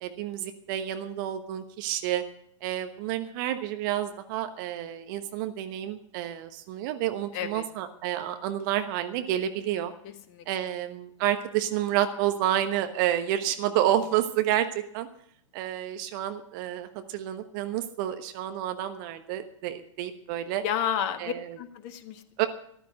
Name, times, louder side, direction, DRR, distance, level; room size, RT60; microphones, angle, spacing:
voice 1, 0.0-2.2 2.6-9.9 10.5-14.7 14.9-15.1 15.5-20.6 21.2-21.6 22.4-22.5, right 12 dB, 40° right, 9 dB, 1.2 m, -29 dB
voice 2, 7.3-7.7 10.0-10.4 20.6-22.2, left 9 dB, 35° left, 9 dB, 1.5 m, -31 dB
14.0 x 12.0 x 6.5 m, 0.66 s
figure-of-eight pair, 105°, 16 cm